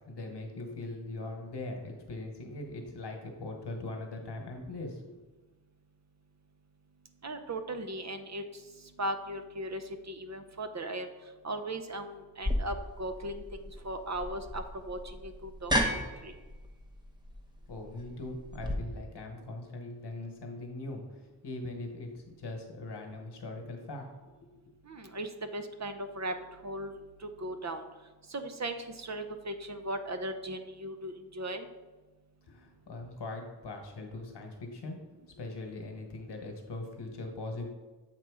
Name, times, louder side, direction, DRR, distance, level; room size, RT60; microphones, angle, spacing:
voice 1, 0.1-5.1 17.7-21.0 21.4-24.5 32.5-35.0 35.3-37.7, left 2 dB, 75° left, 3 dB, 1.2 m, -41 dB
voice 2, 7.2-11.1 11.4-16.3 24.8-27.8 28.3-31.7, right 1 dB, 40° right, 8 dB, 0.6 m, -38 dB
sound 1, 12.4-18.7, equal, 10° right, 0.9 m, -34 dB
7.6 x 2.9 x 4.7 m, 1.2 s
cardioid pair, 60°, 41 cm